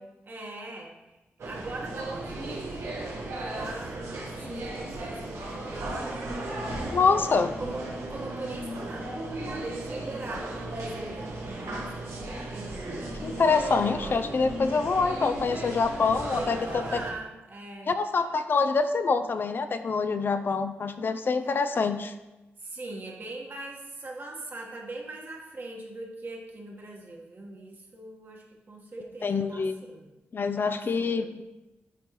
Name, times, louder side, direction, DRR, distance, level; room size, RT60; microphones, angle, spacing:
voice 1, 0.2-1.2 1.4-3.0 3.4-6.2 7.0-7.3 7.6-12.1 16.0-17.9 22.6-30.1 30.6-31.3, right 2 dB, 45° right, -1 dB, 1.4 m, -41 dB
sound 1, 1.4-17.1, right 1 dB, 80° right, 1.4 m, -35 dB
voice 2, 6.9-7.5 13.1-17.0 17.9-22.1 29.2-29.8 30.3-31.4, left 4 dB, 50° left, 9 dB, 0.4 m, -26 dB
9.7 x 5.2 x 3.1 m, 1.0 s
wide cardioid pair, 95°, 5 cm